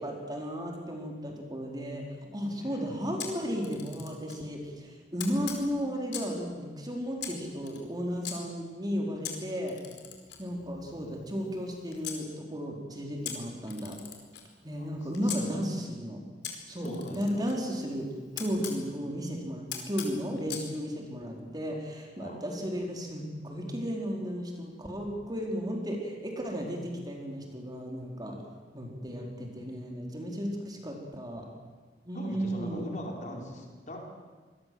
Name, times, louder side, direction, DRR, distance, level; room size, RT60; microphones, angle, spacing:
voice 1, 0.0-2.0 2.3-9.8 10.4-14.0 14.6-16.2 16.7-18.1 18.4-28.4 28.7-31.4 32.1-32.9, equal, 25° right, 1 dB, 4.3 m, -34 dB
voice 2, 2.6-3.0 14.8-15.7 16.8-17.4 22.2-22.4 32.1-34.0, equal, 45° left, 1 dB, 4.6 m, -41 dB
Camera, 3.2-4.4 5.2-6.4 7.2-8.3 9.2-12.2 13.2-15.4 16.4-18.8 19.7-20.7, left 8 dB, 75° left, 4.6 m, -42 dB
26.0 x 20.5 x 7.8 m, 1.4 s
head